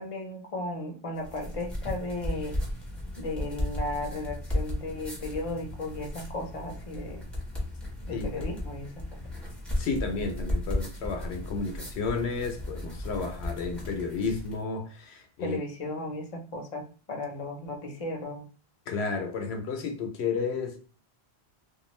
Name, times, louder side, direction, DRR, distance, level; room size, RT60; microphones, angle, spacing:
voice 1, 0.0-2.6 3.2-7.2 8.0-9.1 15.4-18.5, left 2 dB, 40° left, 0.6 m, -35 dB
sound 1, 1.2-14.6, left 1 dB, ahead, 0.8 m, -35 dB
voice 2, 9.8-15.6 18.9-20.8, left 4 dB, 80° left, 0.8 m, -32 dB
2.4 x 2.4 x 3.1 m
omnidirectional pair, 1.1 m